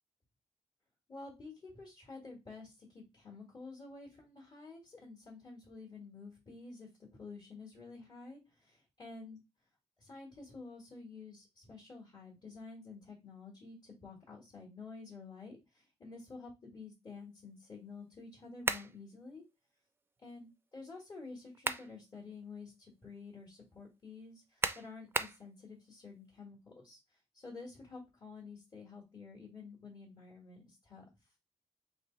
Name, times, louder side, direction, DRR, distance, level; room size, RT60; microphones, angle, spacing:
voice 1, 1.1-9.4 10.0-19.4 20.2-27.0 27.3-31.0, left 4 dB, 40° left, -1 dB, 1.7 m, -50 dB
sound 1, 18.6-19.0 21.3-21.9 22.4-22.5 24.6-25.4, right 3 dB, 20° right, 0.4 m, -34 dB
3.3 x 3.0 x 3.8 m, 0.24 s
cardioid pair, 95°, 12 cm